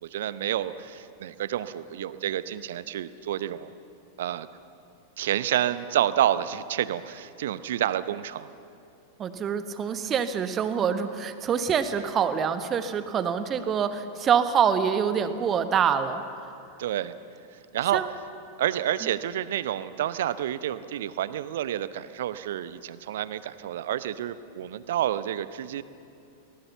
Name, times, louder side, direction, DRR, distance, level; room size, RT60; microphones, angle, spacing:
voice 1, 0.0-3.7 4.2-4.5 5.2-8.5 16.8-17.1 17.7-18.0 18.6-25.8, right 11 dB, 60° right, 14 dB, 0.8 m, -29 dB
voice 2, 9.2-16.2 17.9-18.1, right 7 dB, 25° right, 10 dB, 1.3 m, -25 dB
23.5 x 19.5 x 7.0 m, 2.5 s
figure-of-eight pair, 90°, 0 cm